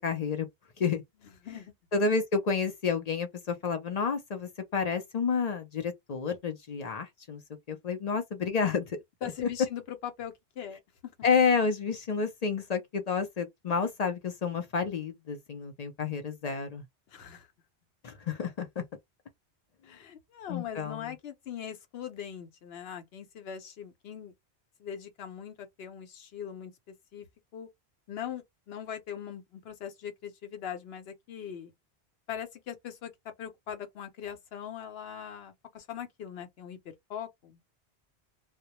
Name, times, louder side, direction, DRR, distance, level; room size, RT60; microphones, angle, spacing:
voice 1, 0.0-0.5 0.8-1.0 1.9-7.4 7.7-9.0 9.4-9.5 11.2-16.8 18.0-18.8 20.5-21.0, left 5 dB, 50° left, 0.5 m, -30 dB
voice 2, 9.2-11.1 17.1-17.5 19.8-24.3 24.8-27.3 27.5-27.7 28.1-31.7 32.3-33.1 33.4-36.8 37.1-37.6, left 9 dB, 70° left, 0.9 m, -41 dB
2.2 x 2.0 x 2.8 m
omnidirectional pair, 1.1 m